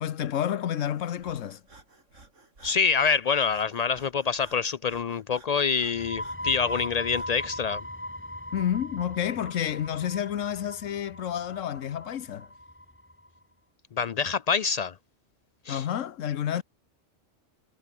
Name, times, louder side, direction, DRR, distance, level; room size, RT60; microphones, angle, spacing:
voice 1, 0.0-1.6 8.5-12.5 15.7-16.6, left 10 dB, 90° left, 1.2 m, -30 dB
Breathing, 0.7-7.5, right 3 dB, 80° right, 4.2 m, -55 dB
voice 2, 2.6-7.8 14.0-14.9 15.7-15.8, left 5 dB, 70° left, 0.3 m, -26 dB
sound 1, 5.8-13.3, left 1 dB, 10° left, 2.0 m, -39 dB
omnidirectional pair, 1.3 m